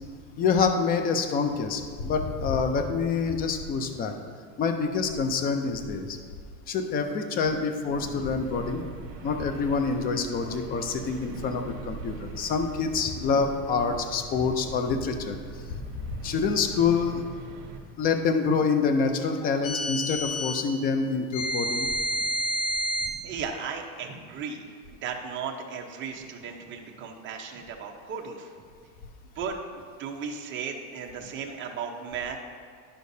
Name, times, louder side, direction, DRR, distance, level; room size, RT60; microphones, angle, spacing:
voice 1, 0.4-4.1 4.6-6.2 6.7-8.8 9.2-15.4 16.2-17.2 18.0-21.9, left 5 dB, 20° left, 6 dB, 0.4 m, -26 dB
sound 1, 7.9-17.8, right 4 dB, 50° right, 1.4 m, -42 dB
voice 2, 11.3-11.7 22.1-22.2 23.1-24.6 24.9-28.5 29.4-32.4, right 6 dB, 30° right, 1 dB, 0.8 m, -36 dB
sound 2, 19.6-20.6 21.3-23.2, equal, 80° left, 1.9 m, -29 dB
11.0 x 6.5 x 2.7 m, 2.1 s
supercardioid pair, 145°, 42 cm